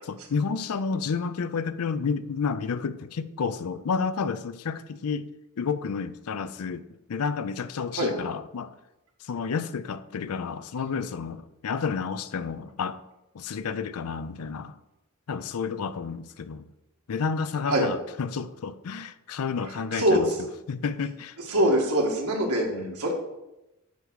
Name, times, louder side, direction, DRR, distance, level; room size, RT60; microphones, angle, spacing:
voice 1, 0.1-5.3 5.6-8.8 9.2-13.0 13.3-14.8 15.3-16.7 17.1-21.4 22.7-23.0, left 5 dB, 80° left, 0.5 m, -31 dB
voice 2, 19.9-20.3 21.5-22.7 23.0-23.1, equal, 90° right, 1.7 m, -23 dB
8.5 x 3.7 x 6.2 m
head